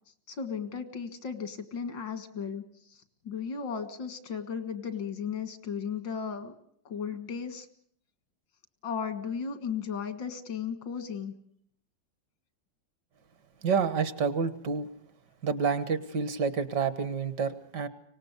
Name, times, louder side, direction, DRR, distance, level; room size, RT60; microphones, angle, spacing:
voice 1, 0.3-2.6 2.9-6.5 6.8-7.7 8.8-11.3, left 6 dB, 90° left, 9 dB, 2.5 m, -35 dB
voice 2, 13.6-14.9 15.4-17.9, right 5 dB, 65° right, 13 dB, 1.9 m, -28 dB
24.5 x 18.5 x 8.2 m, 0.67 s
omnidirectional pair, 2.0 m